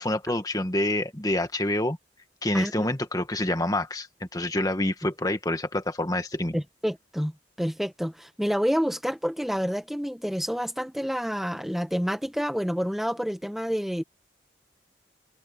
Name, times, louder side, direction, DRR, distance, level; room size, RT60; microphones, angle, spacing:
voice 1, 0.0-2.0 2.4-6.6, left 1 dB, 20° left, 1.7 m, -27 dB
voice 2, 6.5-7.3 7.6-14.0, equal, ahead, 1.5 m, -28 dB
head